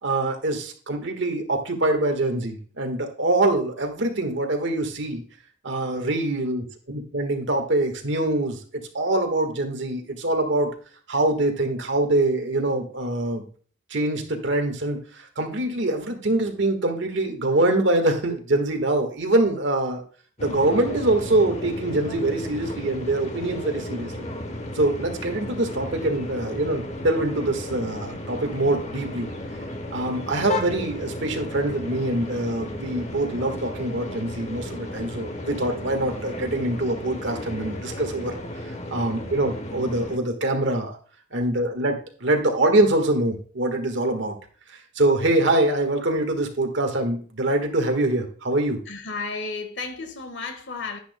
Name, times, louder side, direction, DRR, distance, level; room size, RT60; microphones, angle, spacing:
voice 1, 0.0-5.2 5.6-10.7 11.1-13.5 13.9-15.0 15.4-20.0 20.4-24.1 24.7-29.3 29.9-38.3 38.9-40.9 41.3-44.4 44.9-48.8, right 2 dB, 65° right, 1.6 m, -24 dB
sound 1, 20.4-40.2, left 1 dB, 35° left, 1.0 m, -34 dB
voice 2, 48.9-51.0, left 4 dB, 65° left, 1.4 m, -33 dB
10.0 x 10.0 x 2.2 m
head